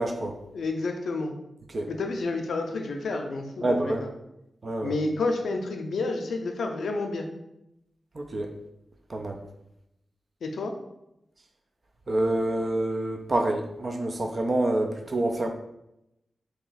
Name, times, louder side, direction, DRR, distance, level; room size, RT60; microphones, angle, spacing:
voice 1, 0.0-0.4 1.7-1.9 3.6-4.1 4.6-5.0 8.1-8.5 9.1-9.4 12.1-15.5, right 1 dB, 45° right, 5 dB, 0.5 m, -27 dB
voice 2, 0.5-1.3 1.9-4.1 4.8-7.3 10.4-10.7, left 3 dB, 90° left, 4 dB, 0.5 m, -30 dB
3.0 x 2.7 x 3.9 m, 0.86 s
wide cardioid pair, 85°, 0 cm